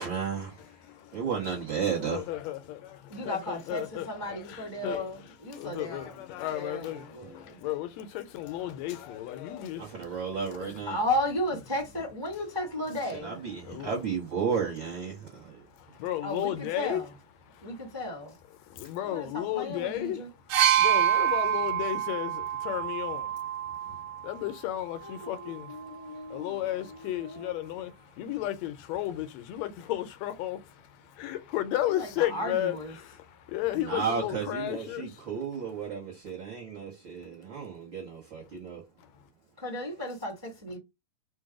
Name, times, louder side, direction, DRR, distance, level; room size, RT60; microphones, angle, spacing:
voice 1, 0.0-0.6 1.1-2.2 9.8-11.0 13.2-15.6 33.7-38.8, right 6 dB, 55° right, 1.4 m, -33 dB
voice 2, 0.8-1.3 2.0-5.0 5.5-10.2 10.6-10.8 13.6-13.9 15.8-17.0 17.5-17.8 18.6-20.2 20.8-25.8 26.0-35.3 39.0-39.1, left 13 dB, 75° left, 1.7 m, -34 dB
voice 3, 3.1-6.2 6.5-7.6 10.9-13.4 16.2-17.1 17.6-18.4 19.0-20.3 25.0-27.5 31.8-33.0 39.6-40.8, left 1 dB, 15° right, 0.7 m, -35 dB
sound 1, 20.5-24.3 25.3-25.5, right 11 dB, 80° right, 1.3 m, -26 dB
4.6 x 2.2 x 4.8 m
omnidirectional pair, 3.3 m